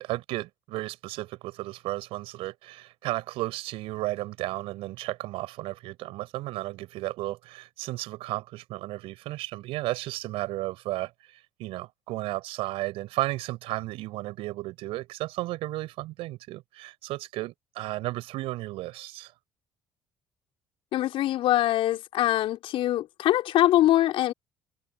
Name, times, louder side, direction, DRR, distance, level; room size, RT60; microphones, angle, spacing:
voice 1, 0.0-11.1 11.6-19.3, right 18 dB, 70° right, 5.2 m, -34 dB
voice 2, 20.9-24.3, left 14 dB, 65° left, 4.6 m, -23 dB
hypercardioid pair, 55°, 10 cm